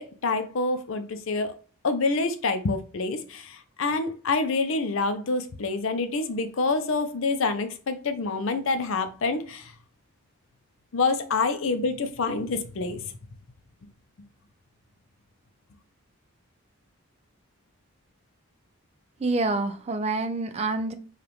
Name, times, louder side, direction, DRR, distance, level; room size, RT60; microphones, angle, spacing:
voice 1, 0.0-1.5 1.8-9.7 10.9-13.1, left 3 dB, 60° left, 0.5 m, -27 dB
voice 2, 19.2-20.9, right 3 dB, 30° right, 0.3 m, -27 dB
5.0 x 2.4 x 3.0 m
head